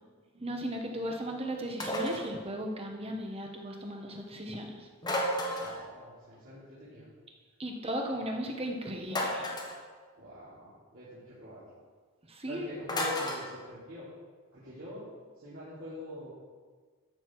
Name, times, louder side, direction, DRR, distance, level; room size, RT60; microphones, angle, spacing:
voice 1, 0.3-4.9 7.6-9.5 12.3-12.7, equal, 25° right, 2 dB, 1.2 m, -36 dB
sound 1, 1.8-2.3 5.0-5.8 9.1-9.8 12.9-13.4, left 1 dB, 20° left, 1.3 m, -32 dB
voice 2, 5.6-7.1 10.2-11.6 12.5-14.1 14.5-15.1 15.4-16.3, left 1 dB, 65° right, -12 dB, 3.6 m, -44 dB
13.5 x 6.7 x 4.8 m, 1.5 s
head